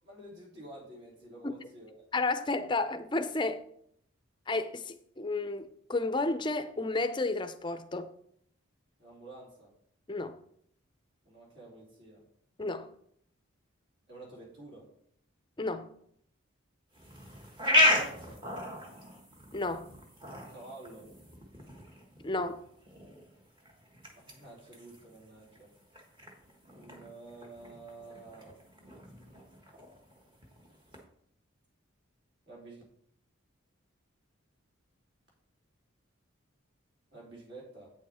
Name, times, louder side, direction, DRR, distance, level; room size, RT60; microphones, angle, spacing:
voice 1, 0.0-2.1 9.0-9.7 11.2-12.2 14.1-14.9 17.7-18.5 20.4-21.1 24.1-25.7 26.7-28.6 32.4-32.8 37.1-37.9, right 2 dB, 55° right, 3.5 m, -50 dB
voice 2, 2.1-3.6 4.5-8.1 10.1-10.4 12.6-12.9 15.6-15.9 19.5-19.9 22.2-22.6, left 2 dB, 20° left, 0.5 m, -32 dB
sound 1, 16.9-31.0, left 1 dB, 20° right, 1.4 m, -35 dB
8.6 x 7.0 x 4.3 m
head